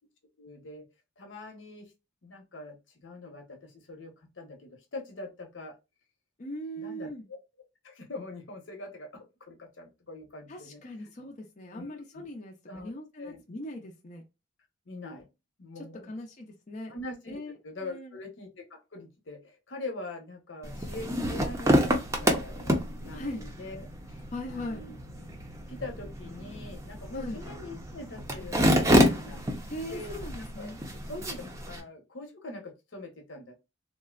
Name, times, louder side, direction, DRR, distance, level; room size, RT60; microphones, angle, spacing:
voice 1, 0.4-0.8 1.2-1.9 2.2-2.8 3.0-5.7 6.8-7.4 7.8-10.8 11.7-12.3 12.7-12.9 13.2-13.4 14.9-15.3 15.6-16.1 16.9-24.2 24.5-25.3 25.7-29.4 29.8-30.7 31.1-33.7, left 2 dB, 85° left, 3 dB, 0.9 m, -43 dB
voice 2, 6.4-7.3 10.5-14.2 15.8-16.9 17.3-18.2 23.1-23.4 24.3-24.8 27.1-27.4 29.7-30.8, left 1 dB, 40° left, 1 dB, 0.5 m, -40 dB
sound 1, 20.6-31.8, equal, 15° right, 0.5 m, -29 dB
3.6 x 2.1 x 2.3 m, 0.25 s
head